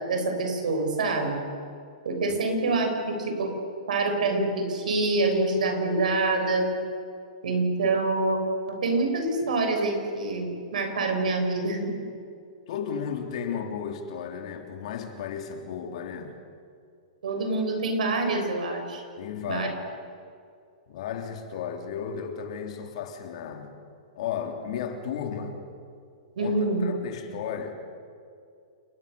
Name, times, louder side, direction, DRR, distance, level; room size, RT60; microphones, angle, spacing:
voice 1, 0.0-1.4 2.0-3.5 3.9-6.7 7.4-8.4 8.7-12.0 17.2-19.0 19.4-19.7 26.4-26.9, right 2 dB, 85° right, 4 dB, 6.8 m, -26 dB
voice 2, 12.7-16.4 19.2-19.7 20.9-23.8 24.1-25.6 26.4-27.7, left 7 dB, 50° left, 4 dB, 3.3 m, -34 dB
29.0 x 20.5 x 7.0 m, 2.4 s
hypercardioid pair, 165°, 4 cm